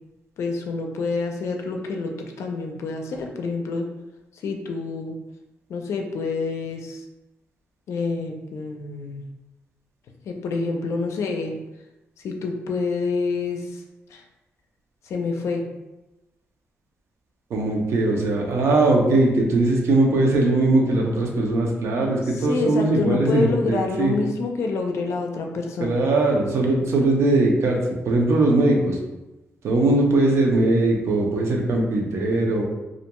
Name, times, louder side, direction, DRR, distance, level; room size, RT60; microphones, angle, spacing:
voice 1, 0.4-2.1 2.4-3.9 4.3-5.1 5.7-7.0 7.9-9.3 10.2-11.6 12.2-13.8 14.1-14.2 15.0-15.6 22.5-26.0, left 4 dB, 80° left, 3 dB, 0.4 m, -27 dB
voice 2, 17.5-24.1 25.8-27.8 28.1-29.0 29.6-32.6, right 2 dB, 70° right, 1 dB, 0.5 m, -20 dB
2.4 x 2.2 x 2.9 m, 1.0 s
cardioid pair, 110°, 5 cm